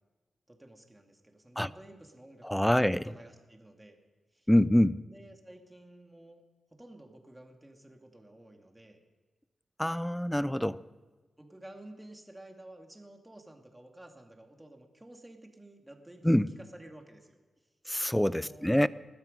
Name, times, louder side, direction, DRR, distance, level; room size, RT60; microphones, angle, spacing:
voice 1, 0.5-4.0 4.3-4.5 5.1-6.4 6.7-9.0 11.4-17.7 18.4-18.8, right 1 dB, 15° right, 3 dB, 2.4 m, -52 dB
voice 2, 2.4-3.0 4.5-5.0 9.8-10.8 16.2-16.5 17.9-18.9, left 1 dB, 5° left, 18 dB, 0.5 m, -25 dB
20.0 x 12.5 x 5.3 m, 1.3 s
cardioid pair, 70°, 0 cm